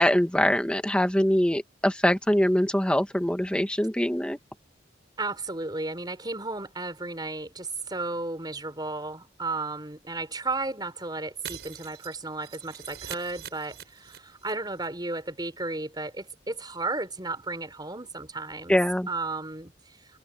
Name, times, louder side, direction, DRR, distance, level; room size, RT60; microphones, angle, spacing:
voice 1, 0.0-4.4 18.7-19.1, equal, 5° left, 1.3 m, -23 dB
voice 2, 5.2-18.8 19.1-20.0, right 3 dB, 25° right, 4.8 m, -34 dB
Shatter, 11.4-14.5 14.8-14.9 15.2-15.3, right 8 dB, 65° right, 7.6 m, -43 dB
open air
head